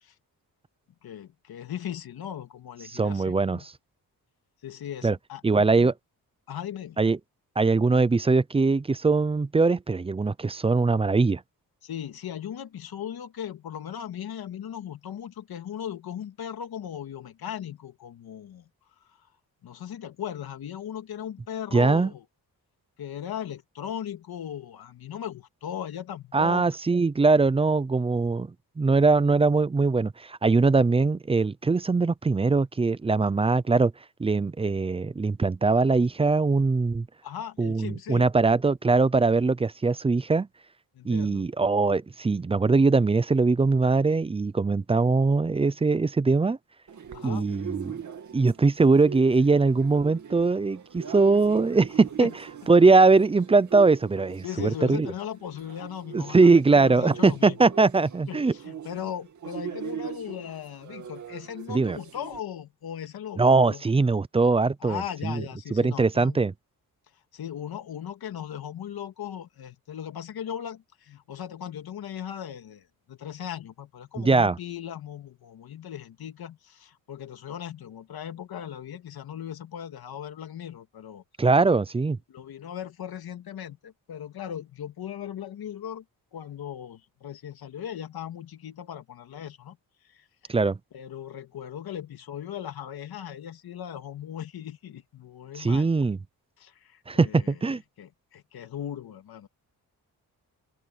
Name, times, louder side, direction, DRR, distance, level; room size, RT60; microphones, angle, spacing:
voice 1, 1.0-3.7 4.6-5.9 6.5-7.0 11.8-18.7 19.6-22.3 23.0-26.8 37.2-38.3 40.9-41.4 47.1-47.5 52.2-52.3 54.4-57.6 58.3-63.8 64.8-66.4 67.3-81.2 82.3-86.0 86.3-89.8 90.1-90.3 90.9-95.9 96.6-99.5, left 9 dB, 75° left, 2.5 m, -38 dB
voice 2, 2.9-3.6 5.0-5.2 5.4-5.9 7.0-7.2 7.6-11.4 21.7-22.1 26.3-33.9 34.2-37.1 37.6-40.5 41.0-46.6 47.2-48.0 48.3-52.3 52.7-55.1 56.1-58.5 61.7-62.0 63.4-65.4 65.7-66.5 74.2-74.6 81.4-82.2 90.5-90.8 95.5-96.2 97.1-97.8, right 3 dB, 15° right, 0.5 m, -21 dB
sound 1, 46.9-62.4, right 8 dB, 50° right, 2.5 m, -41 dB
open air
wide cardioid pair, 155°, 37 cm